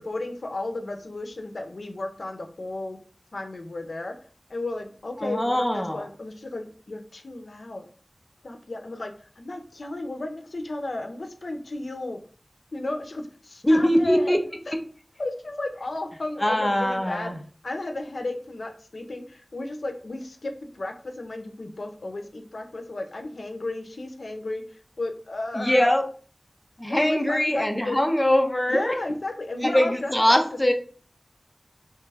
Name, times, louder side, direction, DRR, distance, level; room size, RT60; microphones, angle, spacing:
voice 1, 0.0-3.0 3.3-4.1 4.5-7.8 8.4-12.2 12.7-14.4 14.7-14.8 15.2-17.3 17.6-24.6 25.0-26.0 26.9-28.0 28.7-30.4, left 2 dB, 85° left, 5 dB, 0.4 m, -33 dB
voice 2, 5.2-6.0 13.6-14.4 16.4-17.3 25.6-26.0 26.8-28.9 29.6-30.7, left 1 dB, 15° left, 4 dB, 0.4 m, -22 dB
2.9 x 2.2 x 3.3 m, 0.42 s
wide cardioid pair, 65°, 0 cm